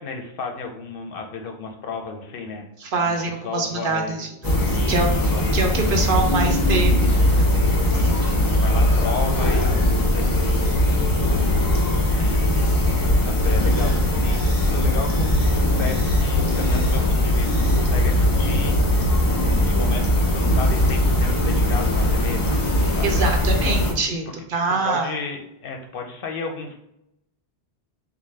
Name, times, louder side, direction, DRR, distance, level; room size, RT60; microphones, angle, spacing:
voice 1, 0.0-2.7 3.0-3.1 3.4-4.3 4.7-5.4 7.9-11.2 12.2-14.4 14.7-18.8 19.2-22.5 22.9-23.4 24.8-26.8, left 4 dB, 65° left, 3 dB, 0.7 m, -34 dB
voice 2, 2.8-8.1 22.8-25.1, right 3 dB, 60° right, 4 dB, 0.7 m, -25 dB
sound 1, 4.4-23.9, left 1 dB, 35° left, 0.4 m, -20 dB
3.6 x 2.4 x 3.2 m, 0.82 s
omnidirectional pair, 1.1 m